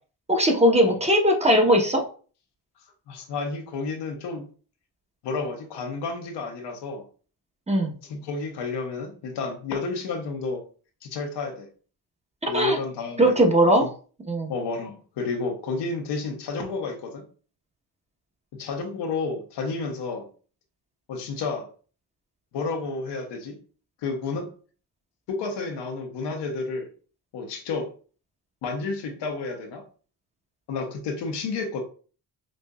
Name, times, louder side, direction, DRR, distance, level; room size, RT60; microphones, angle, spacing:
voice 1, 0.3-2.0 7.7-7.9 12.4-12.8 13.2-13.9 14.3-14.5, equal, 15° right, 2 dB, 0.9 m, -19 dB
voice 2, 3.1-4.5 5.2-7.0 8.0-10.6 11.0-11.7 12.5-13.3 14.5-17.2 18.6-20.3 21.1-21.7 22.5-23.6 24.0-24.5 25.3-26.9 27.3-27.9 28.6-29.8 30.7-31.8, left 4 dB, 80° left, 3 dB, 1.0 m, -31 dB
5.2 x 2.5 x 2.3 m, 0.39 s
cardioid pair, 75°, 41 cm